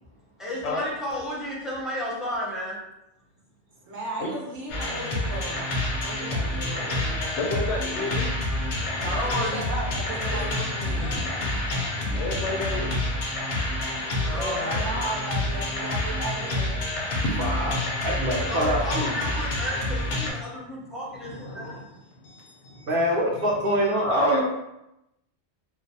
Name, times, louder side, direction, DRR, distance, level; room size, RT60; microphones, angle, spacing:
voice 1, 0.4-2.8 9.0-9.6 10.3-10.5 11.0-11.5 14.2-14.9 18.4-21.8, left 1 dB, ahead, -6 dB, 0.5 m, -33 dB
voice 2, 3.8-5.7 6.0-7.4 9.0-11.1 14.3-16.9, right 1 dB, 85° right, -3 dB, 1.0 m, -35 dB
sound 1, 4.7-20.3, left 1 dB, 60° left, 0.5 m, -28 dB
voice 3, 7.4-8.3 10.9-11.1 12.1-12.9 21.1-21.9 22.2-22.9 23.4-23.7 24.0-24.4, left 3 dB, 80° left, 0 dB, 0.9 m, -32 dB
voice 4, 17.4-19.1 22.9-24.4, equal, 60° right, -2 dB, 0.8 m, -25 dB
2.4 x 2.0 x 2.6 m, 0.87 s
omnidirectional pair, 1.2 m